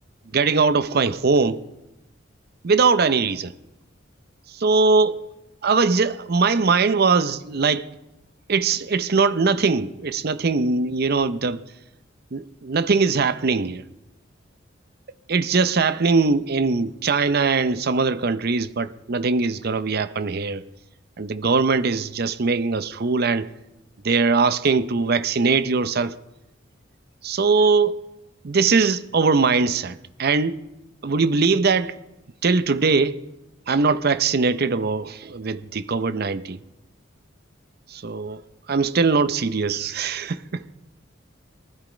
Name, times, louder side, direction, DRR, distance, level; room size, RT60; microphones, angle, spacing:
voice 1, 0.3-1.6 2.6-3.5 4.5-5.2 5.6-7.9 8.5-11.6 12.3-13.8 15.3-20.6 21.2-23.5 24.0-26.2 27.2-28.0 28.4-30.6 31.0-32.0 32.4-33.2 33.7-36.6 37.9-38.4 38.7-40.6, right 4 dB, 55° right, 0.6 m, -21 dB
19.5 x 13.5 x 5.1 m
head